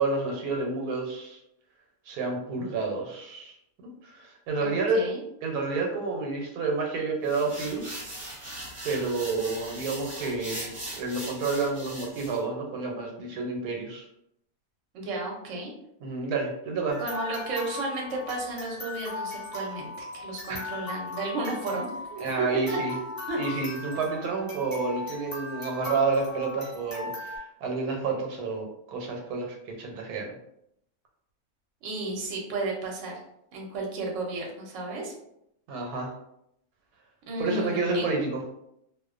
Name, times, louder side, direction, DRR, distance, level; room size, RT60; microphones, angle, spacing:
voice 1, 0.0-1.4 2.1-3.6 4.0-5.0 5.4-8.1 8.5-8.6 8.8-14.0 16.0-17.0 20.5-20.7 22.2-22.9 23.4-30.4 35.7-36.1 37.4-38.4, right 3 dB, 85° right, 1 dB, 1.1 m, -29 dB
voice 2, 4.6-5.2 14.9-15.7 17.0-22.5 23.0-23.4 31.8-33.2 33.5-35.1 37.3-38.0, right 2 dB, 65° right, -1 dB, 0.9 m, -33 dB
sound 1, 7.3-12.4, right 1 dB, 30° right, 0.9 m, -40 dB
sound 2, 16.9-27.4, left 2 dB, 20° left, 0.7 m, -38 dB
2.5 x 2.1 x 2.4 m, 0.78 s
omnidirectional pair, 1.6 m